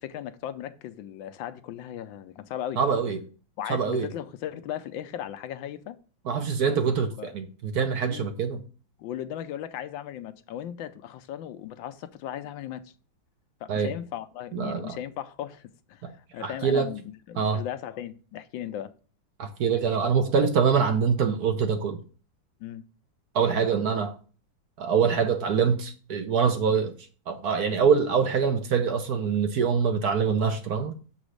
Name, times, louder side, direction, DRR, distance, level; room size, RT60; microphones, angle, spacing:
voice 1, 0.0-2.8 3.6-6.0 7.2-7.3 8.1-8.3 9.0-12.9 13.6-18.9 22.6-22.8, left 11 dB, 80° left, 1.3 m, -37 dB
voice 2, 2.8-3.2 3.7-4.1 6.3-8.6 13.7-13.9 14.5-15.0 16.0-16.1 16.4-16.9 17.4-17.6 19.4-22.0 23.3-24.1 24.8-26.9 27.3-30.9, right 6 dB, 60° right, 1.1 m, -24 dB
7.0 x 4.1 x 6.4 m
omnidirectional pair, 2.2 m